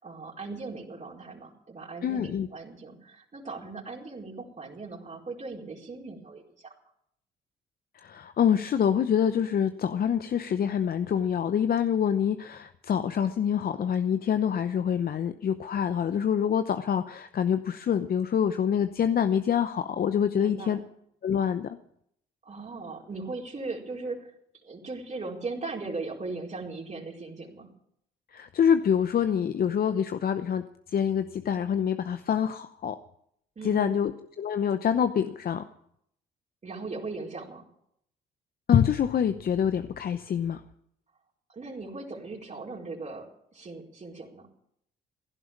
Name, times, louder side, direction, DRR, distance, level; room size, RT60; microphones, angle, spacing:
voice 1, 0.0-6.7 20.3-20.8 22.4-24.3 24.6-27.7 33.6-34.0 36.6-37.7 41.5-44.5, right 3 dB, 35° right, -2 dB, 4.6 m, -38 dB
voice 2, 2.0-2.5 7.9-20.8 21.2-21.8 28.3-33.0 33.6-34.1 34.4-35.6 38.7-40.6, left 8 dB, 50° left, 10 dB, 0.8 m, -26 dB
16.5 x 11.0 x 7.3 m, 0.72 s
supercardioid pair, 60°, 20 cm